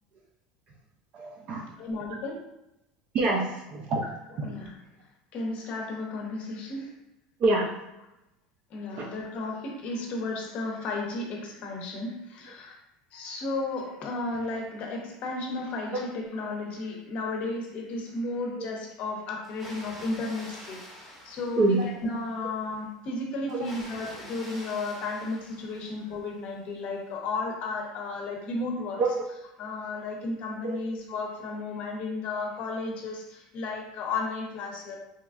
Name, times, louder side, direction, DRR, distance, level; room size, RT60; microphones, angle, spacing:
voice 1, 1.1-1.7 3.1-4.4 7.4-7.7 9.0-9.1 21.6-21.8 23.5-23.6 29.0-29.2 30.6-30.8, right 2 dB, 45° right, 0 dB, 0.4 m, -26 dB
voice 2, 1.8-2.4 4.4-4.8 5.3-6.9 8.7-12.8 13.1-21.8 22.0-29.0 29.6-35.0, left 3 dB, 50° left, 2 dB, 0.6 m, -33 dB
Water, 19.4-22.2 23.5-26.3, equal, 5° right, 0.7 m, -46 dB
3.0 x 2.3 x 2.3 m, 0.88 s
supercardioid pair, 125°, 3 cm